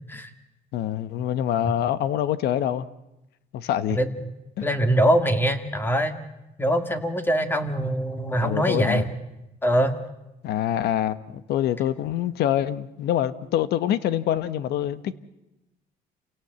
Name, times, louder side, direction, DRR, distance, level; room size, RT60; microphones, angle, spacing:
voice 1, 0.7-2.9 3.5-4.0 4.6-4.7 8.4-9.0 10.4-15.1, left 11 dB, 75° left, 1.2 m, -25 dB
voice 2, 4.6-6.1 6.6-9.1 9.6-10.0, right 1 dB, 10° left, 2.2 m, -23 dB
28.5 x 17.5 x 8.1 m
cardioid pair, 110°, 17 cm